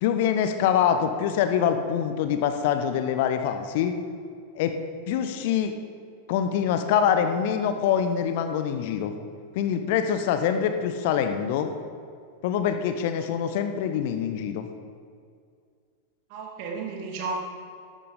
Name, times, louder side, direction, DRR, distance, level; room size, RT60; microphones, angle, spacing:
voice 1, 0.0-4.0 4.5-4.7 5.1-5.7 6.3-9.1 9.5-11.7 12.4-14.7, left 8 dB, 50° left, 8 dB, 0.9 m, -25 dB
voice 2, 16.3-17.3, right 5 dB, 45° right, 0 dB, 2.7 m, -33 dB
13.0 x 12.0 x 5.1 m, 2.2 s
figure-of-eight pair, 90°, 0 cm